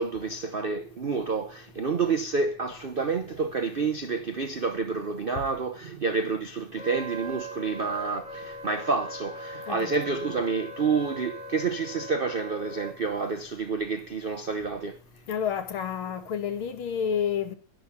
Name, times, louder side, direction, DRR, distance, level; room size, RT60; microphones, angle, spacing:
voice 1, 0.0-15.0, right 4 dB, 70° right, 0.5 m, -29 dB
Wind instrument woodwind instrument, 6.8-12.9, right 1 dB, 20° left, 1.7 m, -40 dB
voice 2, 15.3-17.6, left 8 dB, 85° left, 2.3 m, -29 dB
10.5 x 10.5 x 7.2 m
omnidirectional pair, 2.3 m